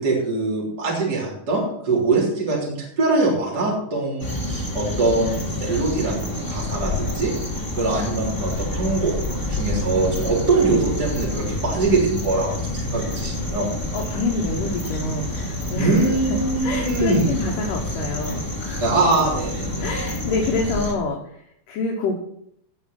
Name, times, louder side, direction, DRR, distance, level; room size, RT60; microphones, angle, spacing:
voice 1, 0.0-7.3 7.8-9.1 9.5-13.7 15.8-17.3 18.8-20.0, right 3 dB, 30° right, -4 dB, 3.8 m, -23 dB
sound 1, 4.2-20.9, left 1 dB, 10° left, 1.7 m, -28 dB
voice 2, 13.9-18.8 19.8-22.2, left 3 dB, 75° left, -1 dB, 2.9 m, -27 dB
17.0 x 5.7 x 6.0 m, 0.69 s
omnidirectional pair, 3.8 m